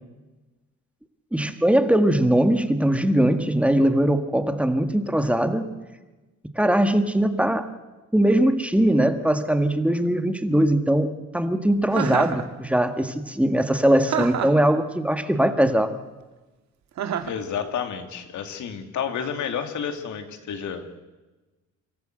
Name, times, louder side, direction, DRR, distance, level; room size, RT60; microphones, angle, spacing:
voice 1, 1.3-5.7 6.6-7.7 8.1-11.1 11.3-15.9, right 1 dB, 5° right, 8 dB, 1.8 m, -21 dB
Chuckle chortle, 11.9-12.4 14.1-14.6 17.0-17.4, right 8 dB, 65° right, 1.8 m, -27 dB
voice 2, 17.2-21.0, left 7 dB, 75° left, 7 dB, 2.4 m, -30 dB
25.5 x 14.0 x 7.9 m, 1.2 s
cardioid pair, 90°, 30 cm